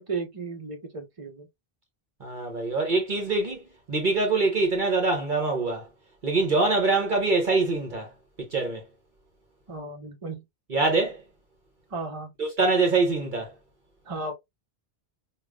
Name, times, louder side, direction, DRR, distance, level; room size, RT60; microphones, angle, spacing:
voice 1, 0.0-1.5 6.6-6.7 9.7-10.4 11.9-12.3 14.0-14.3, right 3 dB, 35° right, 1.0 m, -34 dB
voice 2, 2.2-5.8 6.2-8.1 8.4-8.8 10.7-11.2 12.4-13.5, right 3 dB, 55° right, 1.0 m, -24 dB
4.8 x 2.5 x 2.3 m
omnidirectional pair, 1.0 m